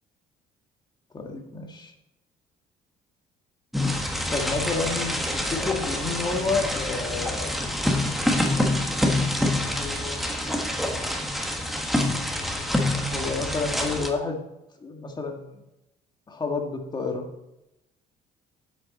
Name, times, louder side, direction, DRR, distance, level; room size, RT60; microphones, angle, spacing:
voice 1, 1.1-1.9 4.3-7.6 9.4-10.2 12.8-14.4 14.8-15.6 16.3-17.3, left 3 dB, 25° left, 2 dB, 1.8 m, -30 dB
sound 1, 3.7-14.1, left 1 dB, ahead, 1.5 m, -26 dB
9.5 x 8.2 x 4.2 m, 0.92 s
cardioid pair, 110°, 17 cm